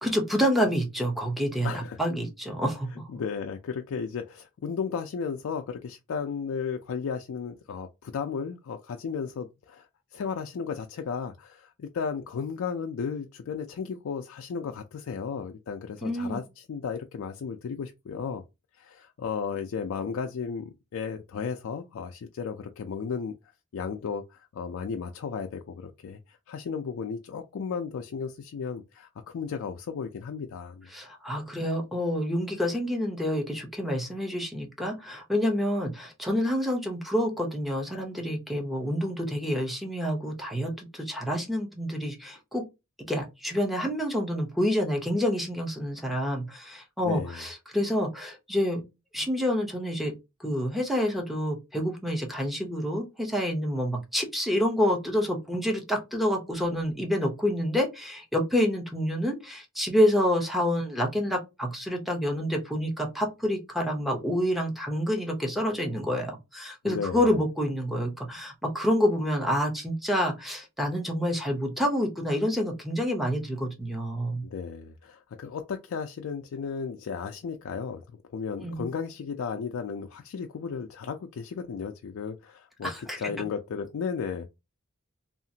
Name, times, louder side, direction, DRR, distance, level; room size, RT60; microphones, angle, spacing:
voice 1, 0.0-3.1 16.0-16.4 30.9-42.6 43.1-48.8 49.1-50.1 50.4-74.4 78.6-78.8 82.8-83.2, equal, ahead, 0.7 m, -28 dB
voice 2, 1.6-2.2 2.9-18.4 18.7-23.3 23.7-30.9 47.0-47.4 66.8-67.3 74.4-78.0 78.3-84.5, left 6 dB, 65° left, 0.3 m, -34 dB
2.8 x 2.4 x 2.7 m
head